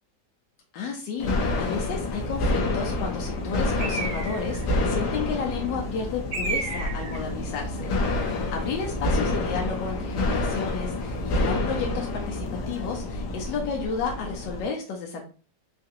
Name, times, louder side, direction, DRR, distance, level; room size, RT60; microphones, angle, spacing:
voice 1, 0.7-15.2, left 5 dB, 90° left, 0 dB, 1.3 m, -32 dB
sound 1, 1.2-14.7, left 2 dB, 75° left, 1.2 m, -28 dB
Bird, 3.8-4.6 6.3-7.2, right 3 dB, 65° right, 1.3 m, -31 dB
3.8 x 2.5 x 2.6 m, 0.37 s
omnidirectional pair, 1.9 m